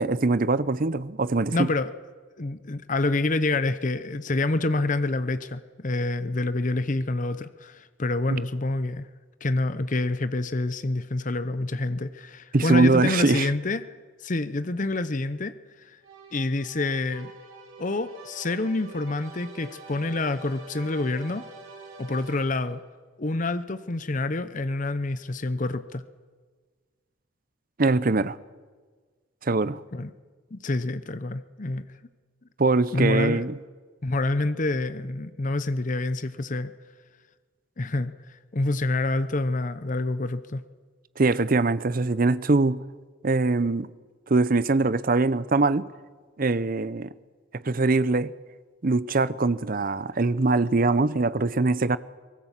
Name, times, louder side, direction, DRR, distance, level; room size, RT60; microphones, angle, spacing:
voice 1, 0.0-1.7 12.5-13.5 27.8-28.4 29.4-29.8 32.6-33.6 41.2-42.8 43.2-43.9 44.3-45.9 46.4-47.1 47.6-48.3 48.8-52.0, right 3 dB, 40° right, 0.6 m, -22 dB
voice 2, 1.5-1.9 2.4-9.1 9.4-13.9 14.2-16.0 16.3-17.3 17.8-21.4 22.0-22.8 23.2-26.0 29.9-30.1 30.5-31.9 32.9-33.5 34.0-36.7 37.8-40.6, left 2 dB, 35° left, 0.7 m, -27 dB
sound 1, 16.0-22.9, right 3 dB, 85° right, 5.5 m, -46 dB
23.5 x 18.5 x 7.4 m
head